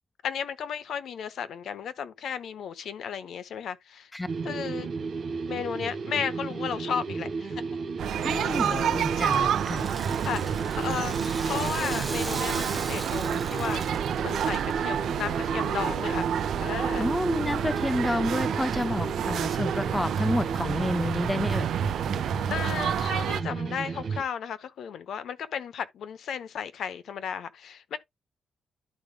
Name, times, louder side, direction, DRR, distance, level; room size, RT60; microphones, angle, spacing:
voice 1, 0.2-4.1 4.4-4.9 5.5-7.6 8.7-9.6 10.2-16.3 16.6-17.1 22.5-28.0, left 7 dB, 70° left, 0.7 m, -34 dB
sound 1, 4.3-24.2, right 4 dB, 45° right, 2.3 m, -33 dB
sound 2, 8.0-23.4, right 9 dB, 85° right, 0.6 m, -29 dB
voice 2, 8.2-9.8 17.0-21.7, left 1 dB, 10° left, 0.3 m, -29 dB
Rattle (instrument), 8.5-14.7, right 2 dB, 10° right, 1.3 m, -40 dB
12.0 x 5.0 x 2.2 m
wide cardioid pair, 175°, 0 cm